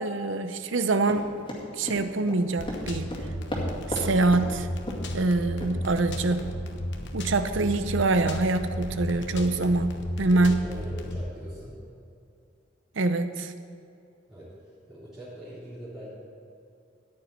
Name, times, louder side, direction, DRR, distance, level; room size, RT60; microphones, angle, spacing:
voice 1, 0.0-1.3 1.8-3.1 4.0-4.7 5.1-6.5 7.1-10.6 13.0-13.5, right 2 dB, 70° right, 10 dB, 0.7 m, -25 dB
Run, 1.1-4.1 4.3-4.5 4.9-5.1 5.6-5.7 6.3-6.4, left 1 dB, 25° left, 2.2 m, -34 dB
sound 1, 2.6-11.2, equal, 65° left, 1.0 m, -34 dB
voice 2, 10.3-11.8 14.3-14.5 14.9-16.1, equal, ahead, -13 dB, 3.3 m, -42 dB
14.0 x 9.7 x 4.4 m, 2.6 s
head